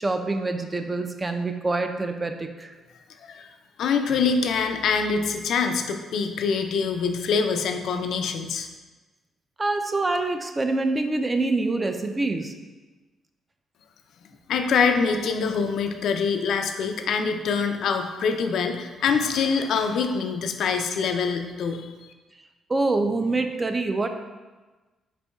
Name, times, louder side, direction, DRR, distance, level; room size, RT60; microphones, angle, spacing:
voice 1, 0.0-2.7 9.6-12.5 22.7-24.1, right 2 dB, 25° right, 6 dB, 0.3 m, -25 dB
voice 2, 3.8-8.7 14.5-22.1, left 5 dB, 70° left, 6 dB, 0.3 m, -25 dB
4.2 x 4.1 x 2.3 m, 1.2 s
cardioid pair, 90°, 0 cm